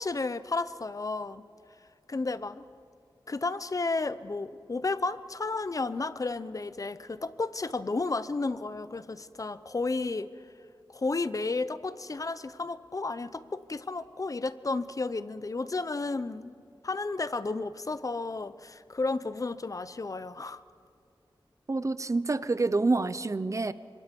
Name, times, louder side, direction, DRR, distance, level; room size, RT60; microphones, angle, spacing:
voice 1, 0.0-1.4 2.1-2.7 3.3-10.3 10.9-16.5 16.8-20.6, left 3 dB, 45° left, 14 dB, 0.7 m, -32 dB
voice 2, 21.7-23.7, right 3 dB, 40° right, 15 dB, 0.8 m, -27 dB
30.0 x 26.0 x 5.4 m, 2.5 s
wide cardioid pair, 95°, 8 cm